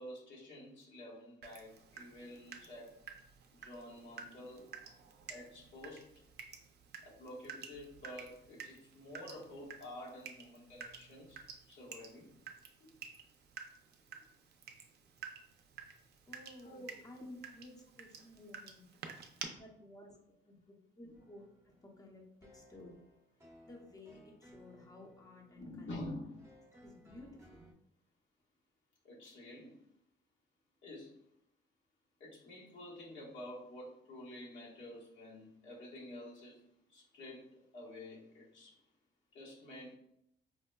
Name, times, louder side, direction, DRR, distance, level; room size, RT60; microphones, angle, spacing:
voice 1, 0.0-2.9 3.6-4.7 5.3-6.1 7.0-11.4 11.7-12.3 16.6-17.0 21.0-21.2 25.5-26.4 29.0-29.7 30.8-31.1 32.2-36.6 36.9-37.5 37.7-38.8 39.3-39.9, left 1 dB, 70° left, -4 dB, 1.2 m, -49 dB
Water tap faucet / Drip, 1.4-19.5, right 6 dB, 55° right, 0.5 m, -52 dB
voice 2, 16.2-18.9 19.6-20.2 20.4-23.0 23.6-25.9 26.8-27.7, left 1 dB, 20° left, 0 dB, 0.7 m, -54 dB
sound 1, 21.1-27.7, left 1 dB, 15° right, 0.8 m, -62 dB
4.7 x 2.1 x 2.2 m, 0.77 s
cardioid pair, 90°, 20 cm